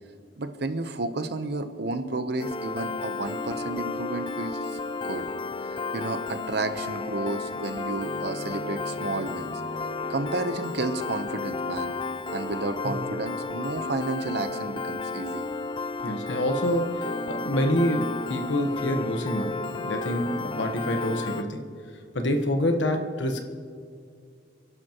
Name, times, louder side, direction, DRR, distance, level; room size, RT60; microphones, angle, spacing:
voice 1, 0.4-4.8 5.0-5.3 5.9-9.5 10.1-11.9 12.3-15.4, right 2 dB, 65° right, 9 dB, 0.9 m, -31 dB
Piano, 2.4-21.4, left 3 dB, 30° left, 0.5 m, -33 dB
voice 2, 16.0-21.6 22.1-23.4, equal, 80° left, 5 dB, 1.2 m, -27 dB
28.5 x 11.0 x 3.0 m, 2.3 s
head